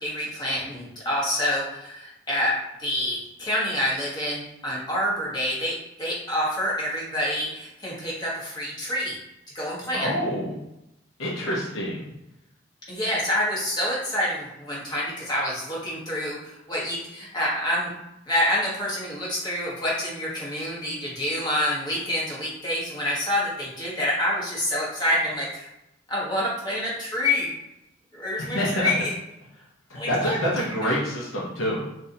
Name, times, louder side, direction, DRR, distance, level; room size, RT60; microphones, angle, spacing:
voice 1, 0.0-9.1 9.5-10.1 12.9-17.9 18.3-25.7 26.1-27.5 28.1-29.1 29.9-30.4 30.7-31.0, left 1 dB, 20° left, -6 dB, 1.1 m, -27 dB
voice 2, 9.9-10.5 11.2-12.1 28.4-28.9 29.9-31.8, equal, 85° left, -5 dB, 0.8 m, -27 dB
3.9 x 2.6 x 2.7 m, 0.87 s
head